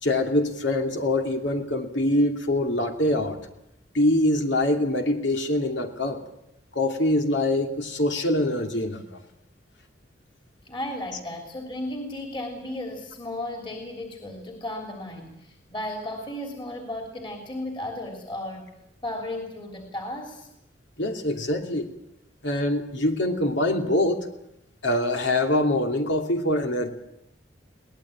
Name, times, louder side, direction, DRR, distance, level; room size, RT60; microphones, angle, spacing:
voice 1, 0.0-3.4 3.9-6.2 6.7-9.2 21.0-21.9 22.4-24.3 24.8-26.9, left 1 dB, 75° left, 4 dB, 2.8 m, -24 dB
voice 2, 10.6-18.7 19.0-20.5, left 1 dB, 30° left, 3 dB, 3.4 m, -34 dB
23.0 x 18.5 x 8.8 m, 0.82 s
head